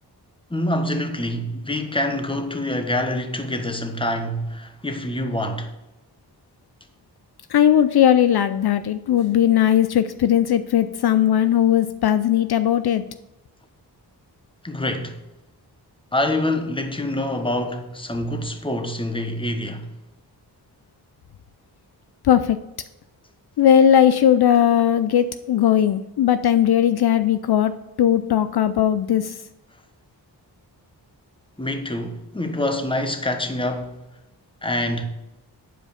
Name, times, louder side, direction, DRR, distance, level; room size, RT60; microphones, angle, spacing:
voice 1, 0.5-5.7 14.6-15.2 16.1-19.9 31.6-33.9 34.6-35.0, left 1 dB, 15° left, 1.1 m, -26 dB
voice 2, 7.5-13.0 22.2-22.6 23.6-27.7 28.0-29.4, left 10 dB, 65° left, 0.5 m, -18 dB
8.2 x 4.9 x 6.7 m
cardioid pair, 65°, 41 cm